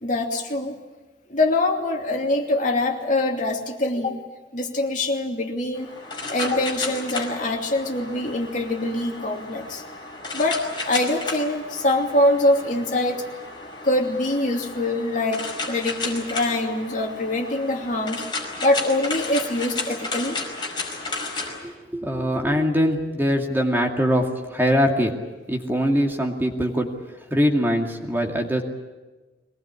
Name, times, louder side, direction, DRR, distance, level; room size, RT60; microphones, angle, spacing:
voice 1, 0.0-0.8 1.3-4.2 4.5-5.9 6.3-9.8 10.3-13.2 13.8-18.3 18.6-20.4, left 1 dB, 45° left, 2 dB, 2.7 m, -24 dB
sound 1, 5.7-21.6, left 3 dB, 25° left, 5.2 m, -33 dB
voice 2, 21.6-24.2 24.5-25.2 25.5-26.9 27.3-28.6, equal, 10° right, 1 dB, 2.3 m, -22 dB
23.0 x 19.5 x 9.8 m, 1.2 s
head